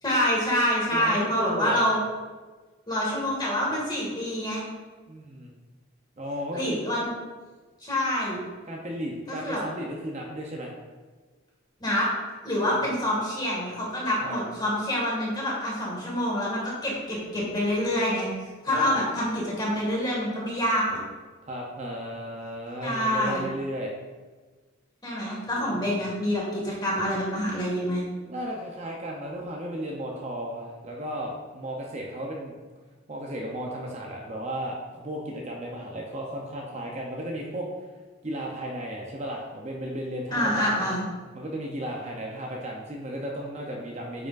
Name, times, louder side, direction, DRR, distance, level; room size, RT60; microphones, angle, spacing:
voice 1, 0.0-2.0 2.9-4.6 6.5-7.1 7.8-8.4 9.3-9.6 11.8-12.1 12.4-18.3 18.6-21.0 22.8-23.5 25.0-28.0 40.3-41.1, equal, 20° left, -5 dB, 2.0 m, -26 dB
voice 2, 0.9-1.9 5.1-5.5 6.2-6.8 8.7-10.7 14.2-14.4 18.6-18.8 21.4-23.9 25.7-26.0 28.2-32.6 33.1-37.7 38.2-40.9 41.3-44.3, equal, 35° right, -1 dB, 0.7 m, -34 dB
9.1 x 4.9 x 2.5 m, 1.3 s
head